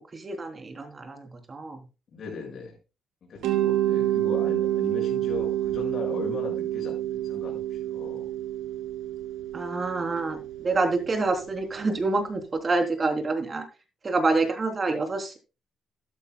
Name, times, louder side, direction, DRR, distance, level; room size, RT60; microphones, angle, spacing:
voice 1, 0.1-1.8 3.9-4.3 9.5-13.6 14.0-15.4, right 3 dB, 35° right, 5 dB, 3.4 m, -27 dB
voice 2, 2.1-2.8 3.3-8.3, left 5 dB, 55° left, -1 dB, 6.3 m, -38 dB
Mallet percussion, 3.4-12.2, right 13 dB, 85° right, 1.9 m, -29 dB
13.0 x 12.0 x 2.3 m, 0.29 s
cardioid pair, 90°, 0 cm